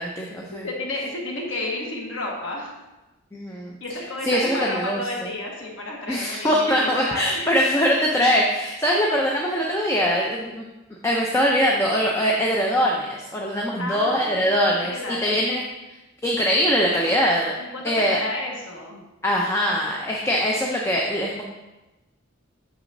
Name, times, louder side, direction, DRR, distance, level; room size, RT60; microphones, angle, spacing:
voice 1, 0.0-0.7 3.3-3.7 4.2-5.3 6.1-10.6 11.0-15.6 16.2-17.5 17.8-18.2 19.2-21.4, equal, 15° left, -1 dB, 0.4 m, -22 dB
voice 2, 0.6-2.7 3.8-7.4 13.8-15.4 17.6-17.8 18.1-19.0, left 2 dB, 65° left, -2 dB, 1.2 m, -31 dB
6.6 x 5.9 x 2.6 m, 1.0 s
head